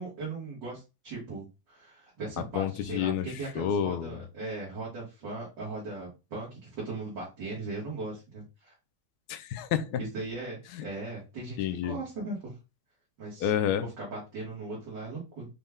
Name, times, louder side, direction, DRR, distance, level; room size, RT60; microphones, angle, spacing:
voice 1, 0.0-8.7 10.0-12.5 13.2-13.5 14.0-15.5, right 3 dB, 90° right, 2.4 m, -38 dB
voice 2, 2.4-3.3 3.5-4.2 9.3-10.0 10.7-10.8 11.6-12.0 13.4-13.9, left 9 dB, 70° left, 1.1 m, -29 dB
5.3 x 2.2 x 3.5 m
omnidirectional pair, 1.9 m